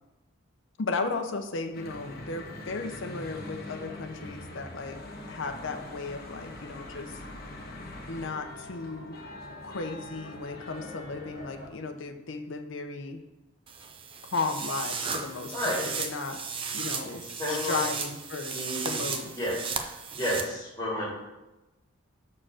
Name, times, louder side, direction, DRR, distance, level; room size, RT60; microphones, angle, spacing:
voice 1, 0.8-5.0 5.3-7.1 8.1-9.2 9.6-13.2 14.3-16.4 16.7-18.6 18.8-19.3, left 3 dB, 65° left, 5 dB, 0.6 m, -35 dB
Church bell / Traffic noise roadway noise, 1.7-11.7, left 2 dB, 45° left, 1.2 m, -43 dB
sound 1, 13.7-20.4, right 5 dB, 25° right, 0.5 m, -35 dB
voice 2, 15.5-15.8 17.1-17.8 18.5-19.0 19.3-19.7 20.1-21.1, left 1 dB, 15° left, -6 dB, 2.1 m, -31 dB
6.2 x 4.5 x 6.2 m, 1.0 s
head